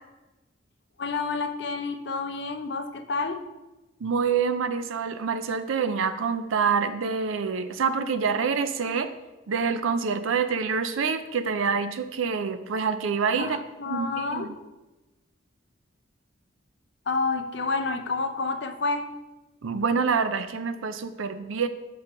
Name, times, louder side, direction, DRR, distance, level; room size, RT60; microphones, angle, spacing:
voice 1, 1.0-3.4 13.4-14.5 17.1-19.1, left 3 dB, 55° left, 7 dB, 0.6 m, -29 dB
voice 2, 4.0-9.1 9.5-13.6 13.9-14.5 19.6-21.7, right 5 dB, 80° right, 11 dB, 0.5 m, -26 dB
5.5 x 4.5 x 5.1 m, 1.1 s
head